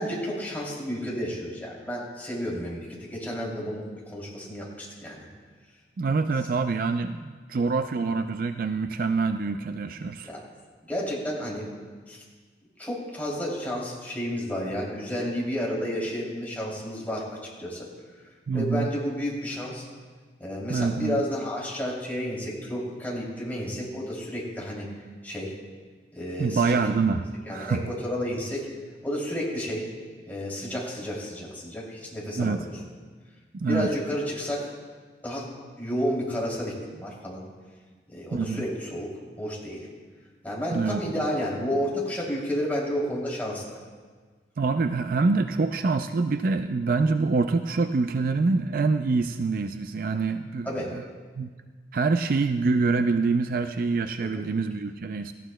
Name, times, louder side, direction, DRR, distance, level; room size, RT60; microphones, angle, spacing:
voice 1, 0.0-3.8 4.1-5.3 8.0-8.1 10.3-10.4 10.9-11.7 12.1-12.2 12.8-17.9 18.5-19.8 20.4-24.9 25.2-25.5 26.1-26.7 27.4-28.7 29.0-29.9 30.3-32.7 33.6-34.7 35.2-35.5 35.8-37.4 38.1-39.1 39.4-39.9 40.4-43.8 50.6-50.9 54.2-54.5, equal, 10° left, -5 dB, 2.8 m, -31 dB
voice 2, 6.0-10.3 18.5-18.9 20.7-21.2 26.4-27.8 32.4-32.7 33.5-33.9 38.3-38.7 40.7-41.2 44.6-51.0 51.4-51.5 51.9-55.3, right 4 dB, 50° right, 8 dB, 0.4 m, -25 dB
17.5 x 14.5 x 2.2 m, 1.5 s
head